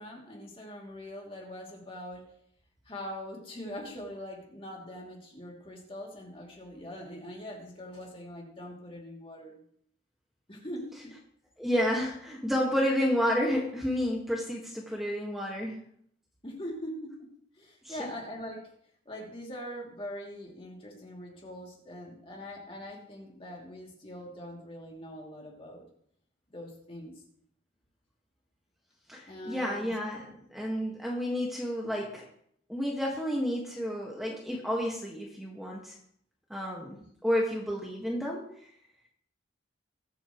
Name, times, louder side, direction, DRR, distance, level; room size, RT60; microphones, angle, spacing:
voice 1, 0.0-2.3 2.8-9.5 10.5-11.2 16.4-18.7 19.0-25.8 26.5-27.2 29.3-29.9, equal, 30° left, -1 dB, 2.7 m, -42 dB
voice 2, 11.6-15.8 17.8-18.1 29.1-32.2 32.7-36.0 36.5-38.4, equal, ahead, -3 dB, 1.6 m, -30 dB
21.5 x 8.4 x 3.1 m, 0.67 s
head